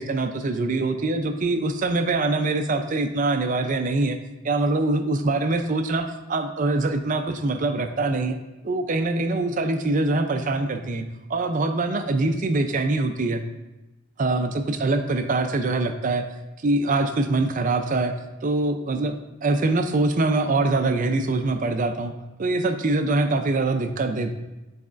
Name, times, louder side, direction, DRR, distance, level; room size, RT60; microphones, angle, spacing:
voice 1, 0.0-4.2 4.4-8.4 8.6-11.0 11.3-13.4 14.2-16.2 16.6-18.1 18.4-19.1 19.4-22.1 22.4-24.3, right 2 dB, 40° right, 8 dB, 0.5 m, -23 dB
9.4 x 4.1 x 2.5 m, 1.0 s
head